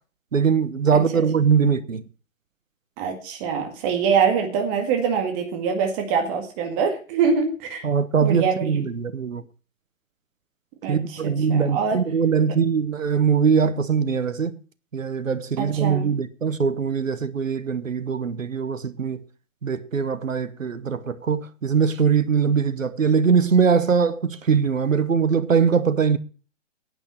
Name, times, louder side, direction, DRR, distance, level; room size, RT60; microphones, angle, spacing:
voice 1, 0.3-2.0 7.8-9.4 10.9-14.6 14.9-19.2 19.6-26.2, right 6 dB, 85° right, 1.2 m, -21 dB
voice 2, 0.9-1.2 3.0-7.9 8.2-8.8 10.8-12.0 15.6-16.1, right 6 dB, 30° right, 2.0 m, -24 dB
11.0 x 9.2 x 6.2 m
figure-of-eight pair, 135°, 38 cm